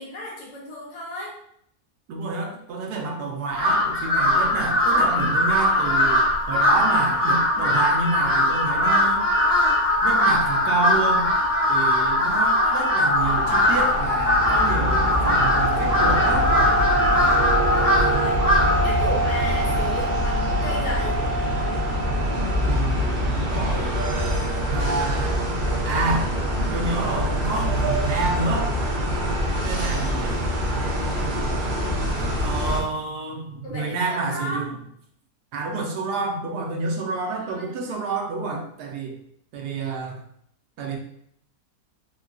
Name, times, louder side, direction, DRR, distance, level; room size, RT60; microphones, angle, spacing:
voice 1, 0.0-1.3 17.7-18.4 18.8-21.2 33.6-34.7 37.3-38.0, left 1 dB, 80° left, -4 dB, 1.5 m, -34 dB
voice 2, 2.1-9.3 10.0-11.3 11.7-16.6 22.6-24.0 24.6-25.4 25.9-26.3 26.7-28.7 29.6-30.5 32.4-34.7 35.5-39.1 39.5-40.2 40.8-41.0, right 3 dB, 80° right, 1 dB, 1.2 m, -28 dB
Crow, 3.5-18.9, left 1 dB, 5° right, 0.5 m, -21 dB
sound 1, 5.3-23.0, equal, 45° left, 0.5 m, -28 dB
sound 2, 13.1-32.8, equal, 60° right, 0.5 m, -25 dB
3.7 x 2.2 x 2.4 m, 0.70 s
omnidirectional pair, 1.7 m